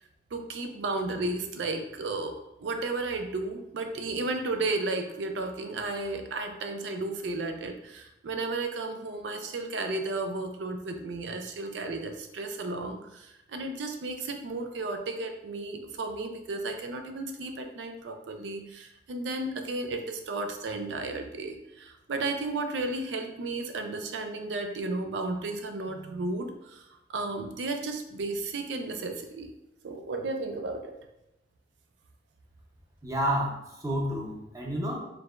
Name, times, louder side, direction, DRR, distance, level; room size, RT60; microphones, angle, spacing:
voice 1, 0.3-29.5 29.8-31.0, right 2 dB, 80° right, 5 dB, 0.4 m, -33 dB
voice 2, 33.0-35.0, equal, 20° right, -2 dB, 0.6 m, -30 dB
4.6 x 3.2 x 2.4 m, 0.90 s
head